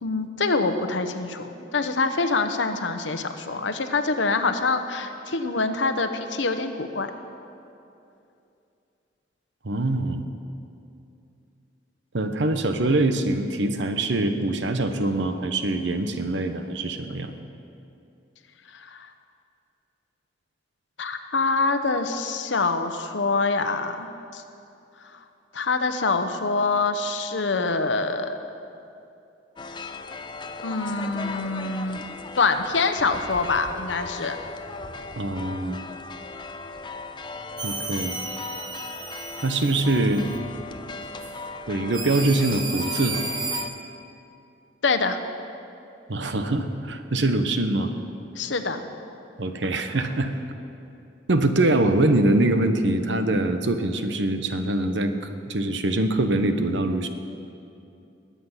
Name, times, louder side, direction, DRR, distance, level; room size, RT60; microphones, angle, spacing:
voice 1, 0.0-7.1 18.7-19.1 21.0-24.1 24.3-24.4 25.5-28.3 30.6-32.0 32.3-34.4 44.8-45.2 48.4-48.8, left 3 dB, 85° left, 8 dB, 0.9 m, -25 dB
voice 2, 9.6-10.2 12.1-17.3 35.2-35.8 37.6-38.1 39.4-40.3 41.7-43.2 46.1-47.9 49.4-50.3 51.3-55.1 55.5-57.1, right 2 dB, 80° right, 8 dB, 1.0 m, -23 dB
sound 1, 29.6-43.7, left 3 dB, 25° left, 0.5 m, -37 dB
sound 2, 37.6-40.4 41.2-41.3 41.9-43.6, right 4 dB, 25° right, 1.1 m, -34 dB
21.0 x 8.5 x 5.7 m, 2.7 s
head